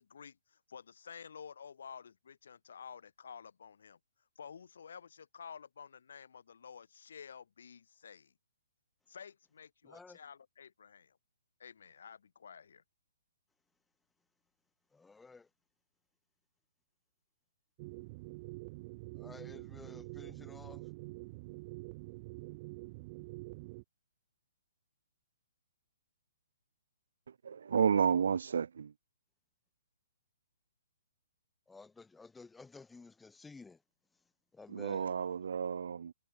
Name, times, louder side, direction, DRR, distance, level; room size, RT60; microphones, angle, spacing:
voice 1, 0.0-4.0 4.4-8.3 9.1-11.2 11.6-12.8, left 7 dB, 70° left, 3.7 m, -51 dB
voice 2, 9.8-10.2 14.9-15.5 19.1-20.8 31.7-33.8 34.5-35.1, left 4 dB, 5° left, 4.9 m, -53 dB
sound 1, 17.8-23.8, right 24 dB, 35° right, 4.8 m, -46 dB
voice 3, 27.3-28.9 34.7-36.1, right 7 dB, 70° right, 1.0 m, -31 dB
hypercardioid pair, 140°, 0 cm